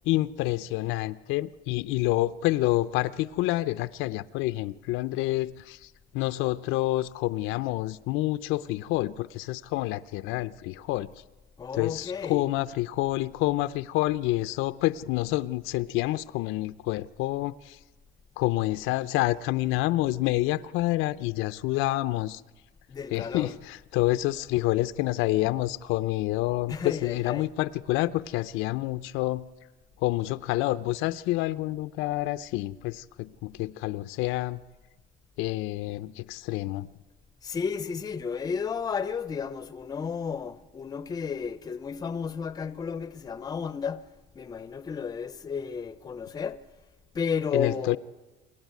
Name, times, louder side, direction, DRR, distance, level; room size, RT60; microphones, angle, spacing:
voice 1, 0.0-11.1 11.7-17.8 18.4-22.4 23.1-29.5 30.0-34.6 35.4-36.9 47.5-48.0, left 17 dB, 80° left, 0.6 m, -28 dB
voice 2, 11.6-12.5 22.9-23.5 26.7-27.5 37.4-46.7 47.1-48.0, left 6 dB, 20° left, 0.6 m, -33 dB
27.0 x 12.0 x 9.5 m
cardioid pair, 175°, 20 cm